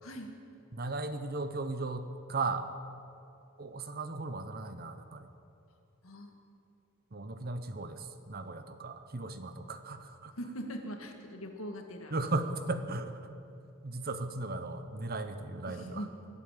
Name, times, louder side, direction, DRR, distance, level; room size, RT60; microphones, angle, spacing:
voice 1, 0.0-0.3 6.0-6.3 10.4-12.2 15.7-16.1, equal, 75° left, 3 dB, 1.9 m, -41 dB
voice 2, 0.7-2.7 3.6-5.3 7.1-10.3 12.1-13.3 13.8-16.0, right 3 dB, 45° right, 9 dB, 0.9 m, -36 dB
22.5 x 8.3 x 7.5 m, 2.7 s
head